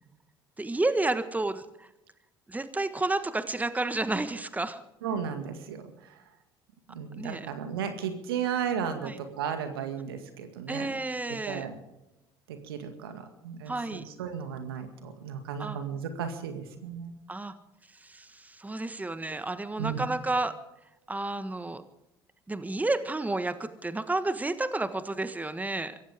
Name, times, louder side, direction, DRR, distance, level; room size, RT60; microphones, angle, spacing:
voice 1, 0.6-1.9 2.5-4.8 7.2-7.5 9.0-9.2 10.7-11.7 13.7-14.0 15.6-15.8 17.3-17.5 18.0-20.5 21.1-21.8 22.5-25.9, right 2 dB, 15° right, 11 dB, 1.5 m, -31 dB
voice 2, 5.0-5.9 6.9-10.9 11.3-11.8 12.5-17.1 19.8-20.1, right 7 dB, 80° right, 7 dB, 2.1 m, -34 dB
23.5 x 16.0 x 3.6 m, 0.92 s
hypercardioid pair, 60°, 12 cm